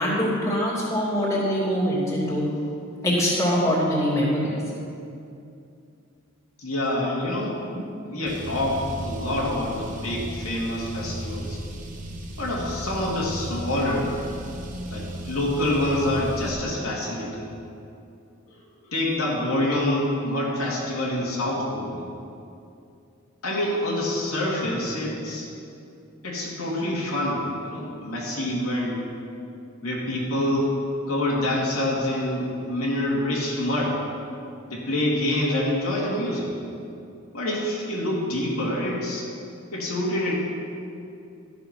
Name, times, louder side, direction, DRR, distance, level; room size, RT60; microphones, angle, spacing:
voice 1, 0.0-2.5 3.0-4.5, equal, 15° left, -8 dB, 2.7 m, -23 dB
voice 2, 6.6-7.6 8.1-11.6 12.4-14.1 14.9-17.5 18.5-22.0 23.4-25.5 26.2-29.0 29.8-30.8 31.1-34.0 34.7-36.5 37.3-39.3 39.7-40.3, left 1 dB, 90° left, -5 dB, 2.6 m, -26 dB
Car, 8.3-16.5, right 1 dB, 35° right, 1.0 m, -35 dB
13.0 x 6.8 x 6.0 m, 2.6 s
head